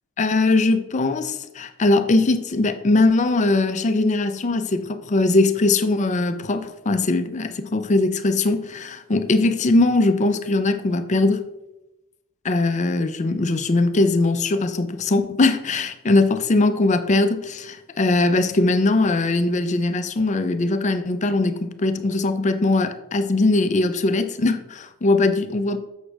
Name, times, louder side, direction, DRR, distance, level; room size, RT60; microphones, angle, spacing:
voice 1, 0.2-11.5 12.4-25.8, left 2 dB, 35° left, 10 dB, 0.5 m, -20 dB
7.2 x 6.1 x 3.3 m, 0.95 s
head